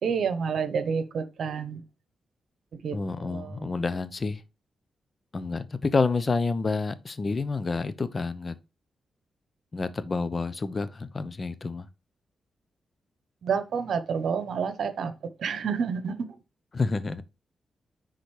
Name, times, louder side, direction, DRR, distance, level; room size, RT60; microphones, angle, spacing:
voice 1, 0.0-1.8 2.7-3.8 13.4-16.2, right 6 dB, 70° right, 0.9 m, -29 dB
voice 2, 2.9-4.4 5.3-8.5 9.7-11.9 16.7-17.2, left 4 dB, 40° left, 0.8 m, -29 dB
9.9 x 4.0 x 3.3 m
supercardioid pair, 55°, 0 cm